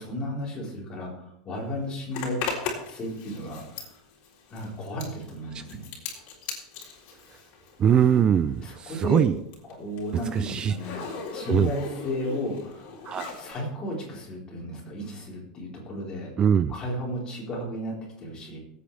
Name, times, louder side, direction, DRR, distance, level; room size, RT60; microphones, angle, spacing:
voice 1, 0.0-2.4 2.9-4.0 4.5-5.8 8.6-9.2 9.8-12.9 13.4-16.3 16.7-18.6, equal, 20° left, -3 dB, 4.2 m, -34 dB
Zipper (clothing), 2.1-8.3 8.6-13.5, left 5 dB, 45° left, 3.8 m, -38 dB
voice 2, 7.8-9.4 10.3-10.8 11.5-11.7 13.0-13.3 16.4-16.7, right 8 dB, 20° right, 13 dB, 0.4 m, -22 dB
23.0 x 8.6 x 3.4 m, 0.77 s
supercardioid pair, 160°, 4 cm